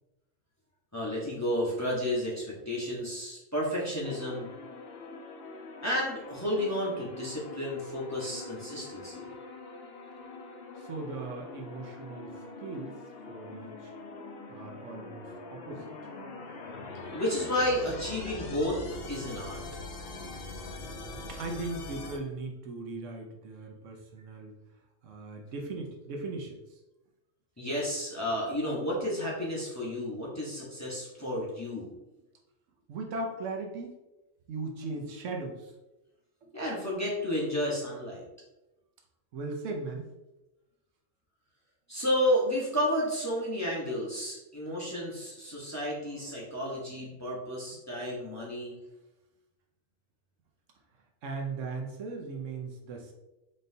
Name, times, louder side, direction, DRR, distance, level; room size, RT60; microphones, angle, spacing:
voice 1, 0.9-4.5 5.8-9.3 17.1-18.8 19.1-19.6 27.6-31.9 36.5-38.2 41.9-48.8, equal, 15° left, -6 dB, 0.8 m, -31 dB
sound 1, 4.0-22.2, left 3 dB, 60° left, 0.8 m, -43 dB
voice 2, 10.7-13.0 13.3-13.9 14.5-15.9 20.8-24.6 25.0-26.8 31.2-31.3 32.9-34.0 34.5-35.7 36.4-36.6 39.3-40.1 46.1-46.3 47.0-47.2 51.2-53.1, right 3 dB, 75° right, 2 dB, 1.0 m, -38 dB
3.9 x 3.7 x 2.7 m, 0.99 s
omnidirectional pair, 1.3 m